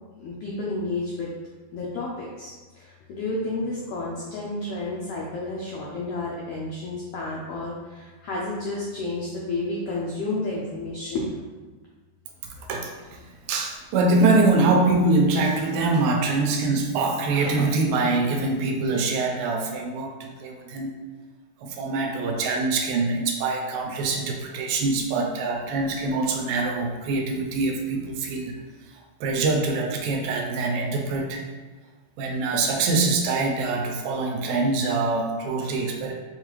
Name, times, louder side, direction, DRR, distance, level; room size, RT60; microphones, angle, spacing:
voice 1, 0.2-1.3 1.7-11.5, left 2 dB, 85° left, -4 dB, 1.3 m, -31 dB
voice 2, 12.7-20.9 21.6-28.6 28.9-31.5 32.2-36.1, right 3 dB, 85° right, 2 dB, 2.0 m, -24 dB
5.4 x 2.4 x 3.0 m, 1.3 s
omnidirectional pair, 3.4 m